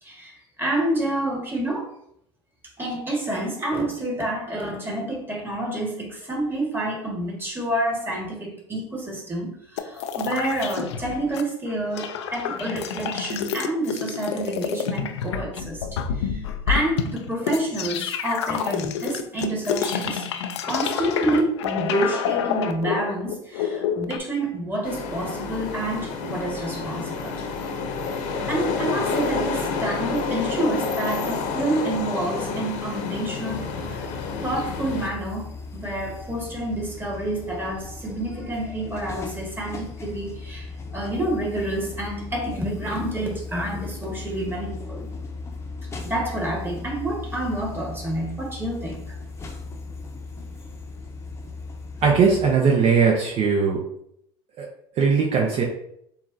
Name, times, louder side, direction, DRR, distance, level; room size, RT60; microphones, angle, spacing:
voice 1, 0.0-1.9 2.8-16.4 16.7-20.3 20.6-27.4 28.5-34.0 34.4-45.1 46.0-49.2, right 1 dB, 15° right, -1 dB, 1.8 m, -28 dB
sound 1, 9.8-11.4 11.7-24.2, left 8 dB, 85° left, 0.5 m, -28 dB
sound 2, 24.8-35.1, left 4 dB, 65° left, 0.9 m, -29 dB
sound 3, 33.5-52.5, left 3 dB, 20° left, 0.8 m, -37 dB
voice 2, 52.0-53.8 54.6-54.7 55.0-55.6, right 5 dB, 50° right, 0 dB, 0.9 m, -19 dB
7.0 x 2.6 x 2.7 m, 0.72 s
hypercardioid pair, 85°, 14 cm